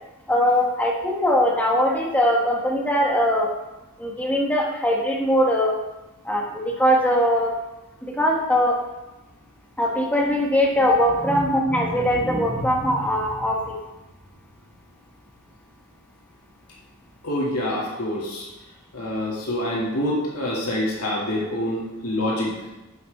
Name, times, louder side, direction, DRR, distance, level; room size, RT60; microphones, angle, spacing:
voice 1, 0.3-3.5 4.0-5.8 6.2-7.5 8.0-8.8 9.8-13.7, equal, 5° left, -1 dB, 1.1 m, -21 dB
voice 2, 17.2-18.5 18.9-22.6, left 1 dB, 90° left, -4 dB, 2.3 m, -26 dB
11.5 x 6.0 x 3.5 m, 1.0 s
head